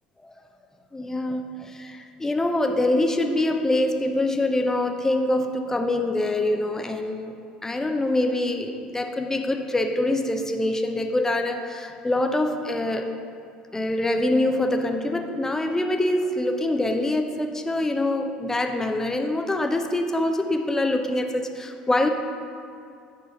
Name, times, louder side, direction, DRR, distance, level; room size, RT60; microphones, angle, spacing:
voice 1, 0.9-7.4 7.6-13.1 13.7-22.1, left 1 dB, 10° left, 5 dB, 0.8 m, -25 dB
10.5 x 4.0 x 6.3 m, 2.5 s
figure-of-eight pair, 65°, 4 cm